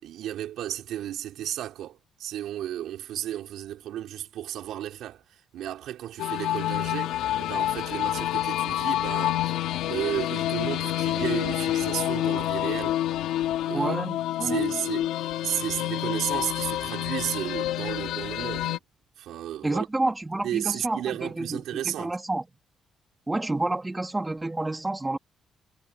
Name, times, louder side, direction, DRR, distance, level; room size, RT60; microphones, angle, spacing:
voice 1, 0.0-9.6 9.9-13.0 13.7-14.0 14.4-18.8 19.2-19.9 20.4-22.2, right 12 dB, 80° right, 5.6 m, -33 dB
sound 1, 6.2-18.8, left 13 dB, 90° left, 3.4 m, -28 dB
voice 2, 13.7-14.6 19.6-22.4 23.3-25.2, right 2 dB, 15° right, 3.6 m, -29 dB
cardioid pair, 90°, 0 cm